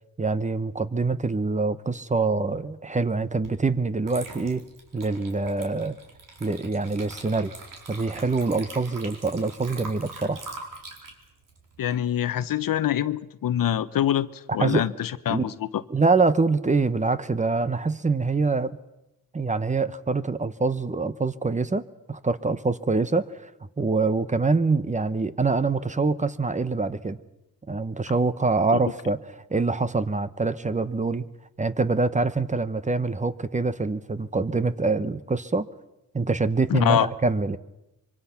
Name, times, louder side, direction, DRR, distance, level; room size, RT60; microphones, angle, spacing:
voice 1, 0.2-4.6 4.9-6.0 6.4-7.6 7.9-10.4 14.6-14.8 15.3-15.5 15.9-18.7 19.3-23.5 23.8-27.2 27.7-29.2 29.5-31.2 31.6-35.7 36.1-37.6, right 3 dB, 20° right, 0.9 m, -25 dB
Water / Liquid, 3.4-3.6 4.0-12.6, right 3 dB, 65° right, 4.5 m, -43 dB
voice 2, 11.8-14.3 14.5-15.8 36.7-37.1, left 11 dB, 70° left, 0.9 m, -25 dB
25.5 x 24.0 x 5.9 m
cardioid pair, 105°, 35 cm